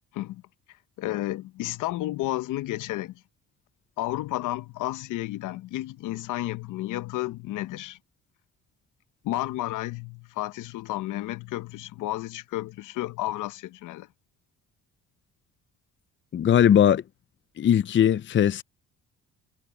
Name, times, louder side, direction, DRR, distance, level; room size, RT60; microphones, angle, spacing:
voice 1, 1.0-3.2 4.0-8.0 9.2-14.1, left 16 dB, 85° left, 0.8 m, -32 dB
voice 2, 16.3-17.0 17.6-18.6, left 9 dB, 40° left, 0.5 m, -19 dB
cardioid pair, 90°, 30 cm